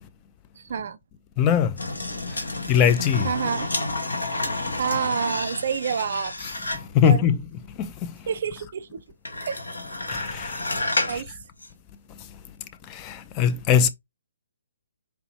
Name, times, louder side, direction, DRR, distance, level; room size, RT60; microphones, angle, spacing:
voice 1, 0.6-1.0 3.2-3.7 4.8-6.3 7.0-7.3 8.3-9.0 9.4-9.6 11.1-11.3, right 7 dB, 55° right, 0.3 m, -28 dB
voice 2, 1.4-1.8 2.3-3.3 6.7-7.4 7.8-8.2 10.1-10.7 11.1-11.2 12.2-12.3 12.9-13.9, left 8 dB, 25° left, 0.4 m, -22 dB
sound 1, 1.8-7.0 9.3-11.2 11.6-11.7, left 2 dB, 75° left, 1.3 m, -30 dB
4.4 x 2.9 x 2.7 m
figure-of-eight pair, 135°, 0 cm